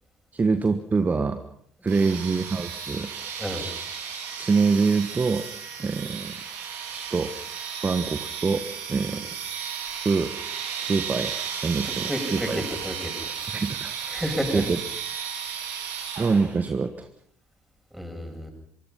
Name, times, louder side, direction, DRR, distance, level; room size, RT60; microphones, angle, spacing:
voice 1, 0.3-1.4 1.8-3.1 4.4-5.4 5.8-6.3 6.9-7.3 7.8-9.3 10.0-10.4 10.8-11.3 11.6-12.6 13.5-14.2 14.5-14.8 16.2-17.1, right 4 dB, 25° right, 10 dB, 1.4 m, -25 dB
sound 1, 1.9-16.6, right 7 dB, 60° right, 6.5 m, -34 dB
voice 2, 11.8-13.1 14.1-14.7 17.9-18.5, equal, ahead, 3 dB, 7.6 m, -31 dB
24.5 x 24.5 x 5.8 m, 0.66 s
figure-of-eight pair, 55°, 7 cm